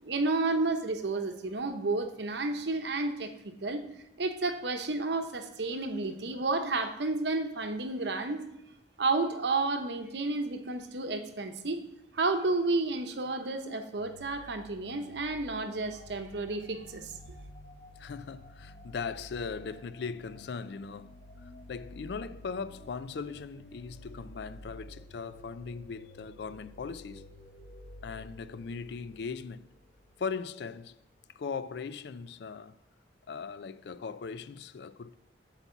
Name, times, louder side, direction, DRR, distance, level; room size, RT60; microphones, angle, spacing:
voice 1, 0.0-3.3 3.6-3.8 4.2-8.4 9.0-11.8 12.1-17.1, right 3 dB, 70° right, 0.8 m, -31 dB
sound 1, 14.0-30.3, left 1 dB, 40° left, 0.9 m, -51 dB
voice 2, 18.0-21.2 21.4-27.3 28.0-29.6 30.2-31.0 31.3-32.7 33.3-35.1, left 5 dB, 65° left, 0.4 m, -39 dB
8.2 x 4.2 x 7.0 m
head